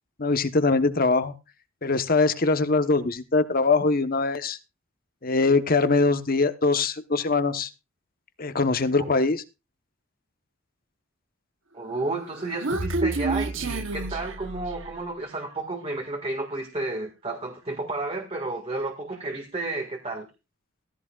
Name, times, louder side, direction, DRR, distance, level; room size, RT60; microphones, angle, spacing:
voice 1, 0.2-1.3 1.8-4.6 5.2-7.7 8.4-9.4, left 3 dB, 45° left, 10 dB, 1.1 m, -22 dB
voice 2, 11.7-20.3, right 2 dB, 30° right, 3 dB, 2.0 m, -32 dB
Human voice, 12.1-15.1, right 3 dB, 65° right, 1.1 m, -29 dB
15.5 x 15.0 x 2.4 m, 0.28 s
head